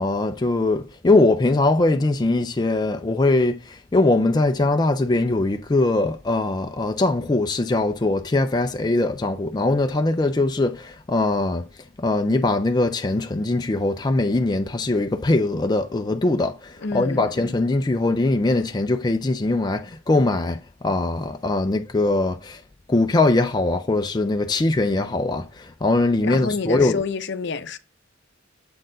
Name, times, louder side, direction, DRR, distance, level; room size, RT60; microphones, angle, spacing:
voice 1, 0.0-11.7 12.0-22.6 22.9-27.0, left 2 dB, 20° left, 0.4 m, -21 dB
voice 2, 16.8-17.3 26.2-27.8, left 4 dB, 60° left, 0.7 m, -28 dB
7.6 x 4.3 x 3.8 m
head